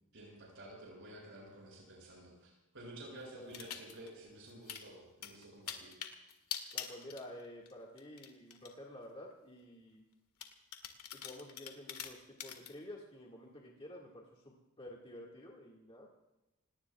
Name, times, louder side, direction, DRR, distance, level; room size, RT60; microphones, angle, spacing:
voice 1, 0.1-5.9, right 1 dB, 60° right, -3 dB, 6.5 m, -52 dB
voice 2, 3.2-3.6 6.7-10.0 11.1-16.1, left 1 dB, 25° left, -2 dB, 1.9 m, -51 dB
sound 1, 3.5-4.1 4.5-4.8 5.2-7.7 8.0-8.7 9.3-9.4 10.4-12.7, left 9 dB, 85° left, 1.8 m, -44 dB
29.0 x 18.5 x 2.4 m, 0.98 s
head